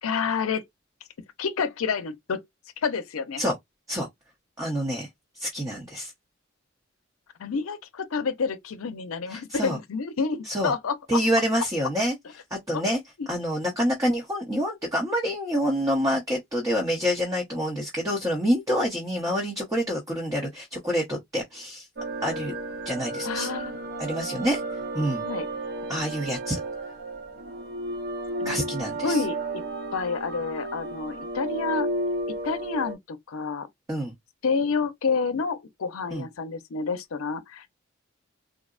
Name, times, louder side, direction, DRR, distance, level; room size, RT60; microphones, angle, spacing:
voice 1, 0.0-0.6 1.4-2.4 2.8-3.4 7.4-11.2 12.7-13.3 23.2-23.8 25.2-25.5 28.4-28.6 29.0-29.6 29.9-31.9 32.4-33.7 34.4-37.7, left 5 dB, 85° left, 0.5 m, -29 dB
voice 2, 4.6-5.1 5.4-6.1 9.3-9.8 10.5-10.7 11.1-12.1 12.7-13.0 13.3-21.9 22.2-22.5 22.8-23.5 24.0-24.6 24.9-25.2 25.9-26.6 28.4-29.2 33.9-34.1 36.1-36.3, equal, 15° right, 0.8 m, -27 dB
sound 1, 22.0-32.9, right 2 dB, 50° right, 0.6 m, -33 dB
3.8 x 2.0 x 2.3 m
head